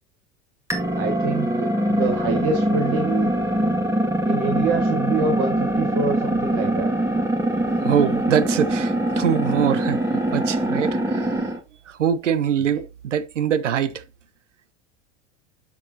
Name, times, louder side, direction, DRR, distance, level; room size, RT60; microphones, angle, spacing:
sound 1, 0.7-11.6, right 1 dB, 10° right, 2.1 m, -23 dB
voice 1, 1.0-3.3 4.3-6.9 12.7-12.8, right 4 dB, 55° right, 1.8 m, -26 dB
voice 2, 7.8-11.5 11.9-14.0, right 8 dB, 85° right, 0.8 m, -23 dB
7.1 x 7.0 x 2.9 m
hypercardioid pair, 85°, 36 cm